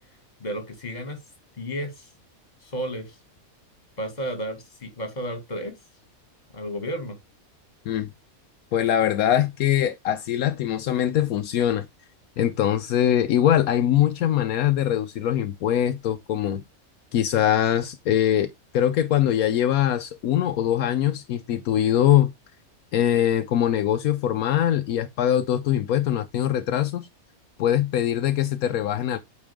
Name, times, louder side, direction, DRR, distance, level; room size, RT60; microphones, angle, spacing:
voice 1, 0.4-1.2 1.6-2.1 2.6-3.1 4.0-5.7 6.5-7.2, equal, 30° left, 2.2 m, -32 dB
voice 2, 8.7-11.8 12.4-16.6 17.1-22.3 22.9-27.1 27.6-29.2, left 11 dB, 80° left, 1.1 m, -22 dB
8.7 x 4.2 x 3.5 m
omnidirectional pair, 1.5 m